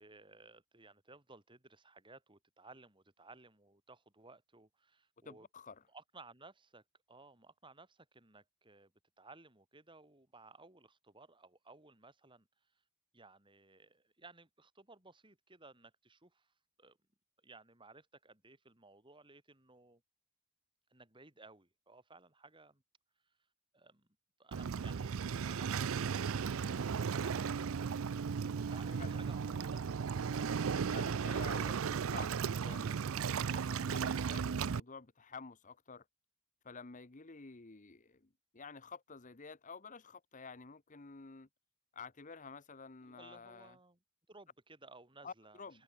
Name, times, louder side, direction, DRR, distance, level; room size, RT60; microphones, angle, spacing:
voice 1, 0.0-5.5 5.9-12.7 13.1-16.5 16.8-17.0 17.4-20.0 20.9-22.8 23.2-23.4 23.7-24.1 24.4-25.2 25.4-31.0 43.0-44.0 44.3-45.8, right 3 dB, 25° right, 4.7 m, -59 dB
voice 2, 5.2-5.8 26.7-26.8 29.0-29.2 30.9-32.9 33.5-36.0 36.6-41.5 41.9-43.8 45.2-45.8, left 5 dB, 35° left, 1.0 m, -51 dB
Waves surf, 24.5-34.8, right 6 dB, 65° right, 0.5 m, -35 dB
open air
head